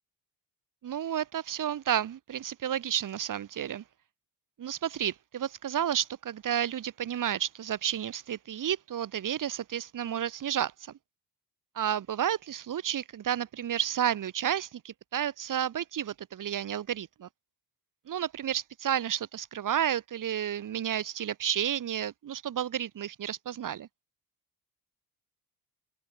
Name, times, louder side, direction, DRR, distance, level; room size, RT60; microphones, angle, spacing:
voice 1, 0.8-3.8 4.6-11.0 11.8-17.3 18.1-23.9, right 10 dB, 55° right, 7.0 m, -31 dB
open air
cardioid pair, 155°, 37 cm